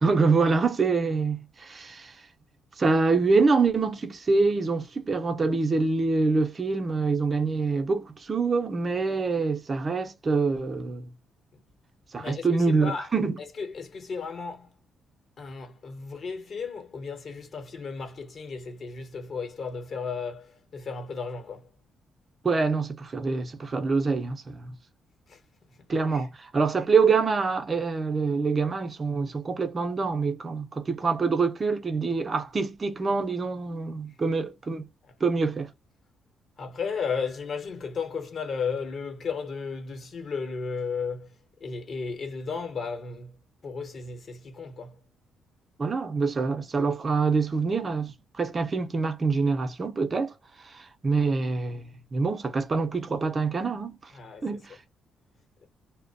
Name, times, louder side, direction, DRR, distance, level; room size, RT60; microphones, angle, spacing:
voice 1, 0.0-2.2 2.8-11.1 12.1-13.4 22.4-24.7 25.9-34.8 35.2-35.7 45.8-54.1 54.4-54.8, right 4 dB, 35° right, 0.6 m, -25 dB
voice 2, 12.2-13.1 13.6-14.7 15.4-21.7 25.3-25.4 25.7-26.3 36.6-41.3 41.6-43.4 43.6-45.0 54.1-54.6, left 5 dB, 50° left, 1.0 m, -34 dB
2.5 x 2.1 x 2.4 m
cardioid pair, 90°, 0 cm